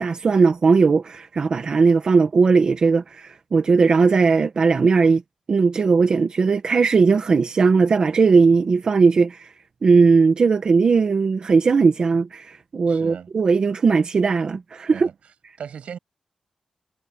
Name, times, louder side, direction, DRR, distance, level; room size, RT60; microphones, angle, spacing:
voice 1, 0.0-5.2 5.5-9.5 9.8-15.1, right 4 dB, 45° right, 1.4 m, -18 dB
voice 2, 12.9-13.3 14.9-15.1 15.6-16.0, right 7 dB, 90° right, 7.6 m, -36 dB
wide cardioid pair, 175°, 2 cm